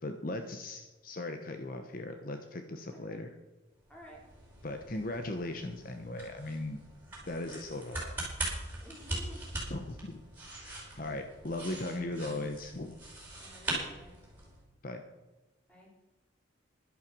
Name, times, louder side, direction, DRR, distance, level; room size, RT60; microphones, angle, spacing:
voice 1, 0.0-3.3 4.6-6.8 7.3-8.2 9.7-10.2 10.6-13.0 14.8-15.0, left 2 dB, 45° left, 6 dB, 1.0 m, -38 dB
sound 1, 3.8-14.6, right 1 dB, 10° right, 5.1 m, -41 dB
voice 2, 8.8-9.6 10.8-10.9 13.4-14.2 15.7-15.9, equal, 5° left, -3 dB, 4.1 m, -53 dB
12.0 x 11.5 x 6.1 m, 1.1 s
head